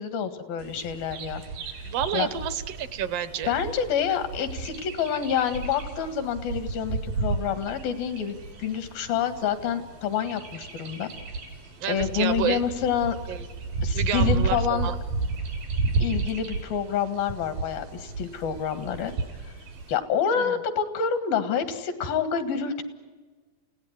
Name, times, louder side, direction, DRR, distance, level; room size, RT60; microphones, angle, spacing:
voice 1, 0.0-1.4 2.1-2.3 3.5-11.1 11.9-13.2 13.8-14.9 16.0-19.1 19.9-22.8, left 7 dB, 90° left, 10 dB, 3.6 m, -27 dB
Bird vocalization bird call bird song, 0.6-20.0, right 3 dB, 85° right, 5.3 m, -32 dB
voice 2, 1.8-3.5 11.8-12.6 13.3-13.5 13.9-15.0 20.4-20.6, right 9 dB, 65° right, 14 dB, 1.6 m, -30 dB
29.0 x 17.5 x 9.6 m, 1.4 s
omnidirectional pair, 4.0 m